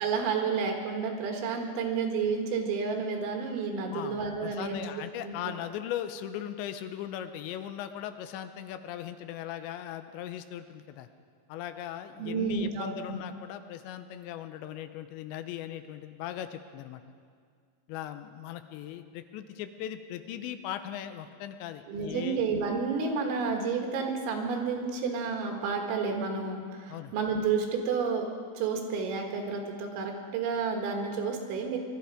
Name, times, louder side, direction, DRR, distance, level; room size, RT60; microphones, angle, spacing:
voice 1, 0.0-4.8 5.2-5.3 12.2-13.2 21.9-28.3 28.6-31.8, right 5 dB, 85° right, 2 dB, 4.0 m, -30 dB
voice 2, 3.9-11.1 11.5-17.0 17.9-22.4 26.9-27.1, left 11 dB, 85° left, 9 dB, 2.9 m, -39 dB
21.0 x 12.5 x 5.0 m, 2.1 s
omnidirectional pair, 5.2 m